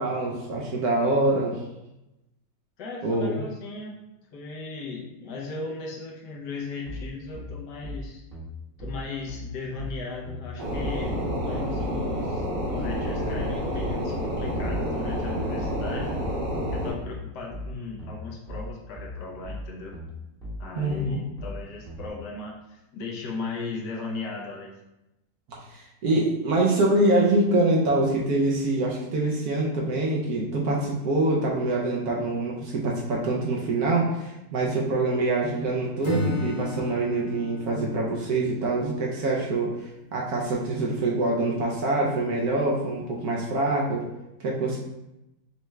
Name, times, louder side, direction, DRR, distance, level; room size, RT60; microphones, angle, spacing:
voice 1, 0.0-1.6 3.0-3.4 20.7-21.2 25.6-44.0 44.4-44.8, right 2 dB, 70° right, -3 dB, 1.0 m, -25 dB
voice 2, 2.8-4.0 4.3-8.2 8.8-16.1 16.7-20.0 20.6-24.7, left 3 dB, 70° left, -1 dB, 1.3 m, -37 dB
sound 1, 6.9-22.1, left 1 dB, 5° left, 0.7 m, -38 dB
sound 2, 10.6-16.9, equal, 50° right, 1.3 m, -29 dB
Acoustic guitar / Strum, 36.0-39.9, left 2 dB, 50° left, 1.2 m, -36 dB
5.6 x 2.2 x 3.1 m, 0.94 s
omnidirectional pair, 2.0 m